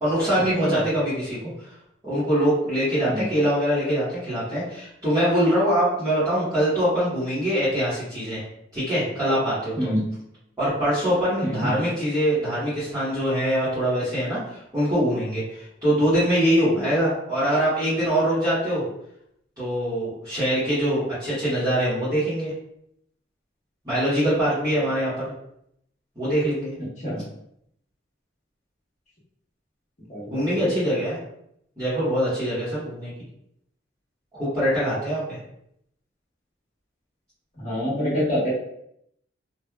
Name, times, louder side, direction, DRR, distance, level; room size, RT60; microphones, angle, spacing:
voice 1, 0.0-1.5 2.0-8.4 8.7-9.9 10.6-18.8 19.6-22.5 23.8-25.3 26.1-26.7 30.3-31.2 31.8-33.1 34.3-35.4, equal, 20° right, -14 dB, 1.4 m, -23 dB
voice 2, 11.4-11.8 27.0-27.2 30.1-30.7 37.6-38.5, equal, 40° left, -7 dB, 1.2 m, -26 dB
3.2 x 2.5 x 2.3 m, 0.75 s
head